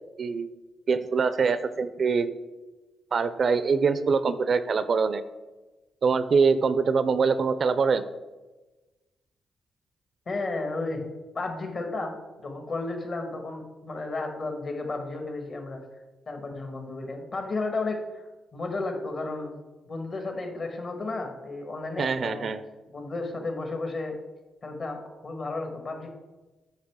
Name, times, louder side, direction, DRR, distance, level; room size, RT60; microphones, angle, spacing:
voice 1, 0.9-2.3 3.1-5.2 6.0-8.0 22.0-22.6, right 5 dB, 50° right, 13 dB, 0.4 m, -24 dB
voice 2, 10.3-11.0 11.3-12.2 12.4-15.8 16.3-18.2 18.5-19.6 19.9-22.5 22.9-24.1 24.6-26.1, left 3 dB, 45° left, 3 dB, 1.6 m, -33 dB
8.8 x 5.4 x 3.7 m, 1.1 s
cardioid pair, 90°, 0 cm